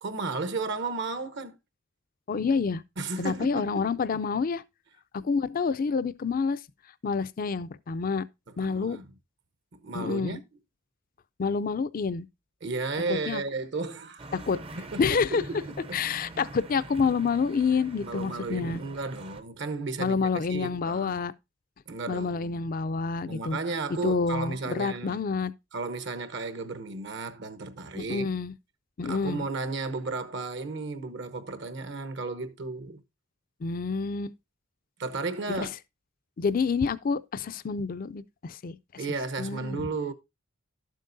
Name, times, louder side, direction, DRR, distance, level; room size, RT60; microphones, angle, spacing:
voice 1, 0.0-1.6 3.0-3.9 8.6-9.1 9.7-10.4 12.6-14.3 14.9-15.0 15.3-16.0 18.0-21.2 21.9-22.7 23.3-25.2 25.7-28.3 29.0-33.0 35.0-35.7 39.0-40.1, right 3 dB, 60° right, 0.9 m, -34 dB
voice 2, 2.3-2.8 3.2-4.6 5.1-6.6 7.0-8.2 8.6-9.0 9.9-10.4 11.4-12.3 13.1-13.4 14.3-14.6 15.0-15.4 15.9-18.8 20.0-21.3 22.1-23.6 24.0-25.5 27.9-28.5 29.0-29.5 33.6-34.3 35.6-35.7 36.4-39.0 39.4-39.9, left 5 dB, 45° left, 0.4 m, -28 dB
sound 1, 14.2-19.4, right 2 dB, 30° right, 0.6 m, -44 dB
12.0 x 7.5 x 2.6 m
head